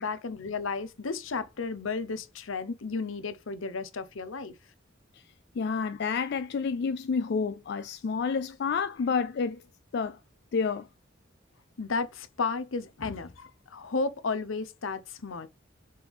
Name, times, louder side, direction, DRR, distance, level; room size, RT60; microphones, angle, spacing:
voice 1, 0.0-4.5 11.8-15.5, left 4 dB, 80° left, 0.8 m, -33 dB
voice 2, 5.5-9.6 9.9-10.2 10.5-10.9, left 5 dB, 55° left, 0.4 m, -29 dB
5.9 x 3.6 x 4.6 m
head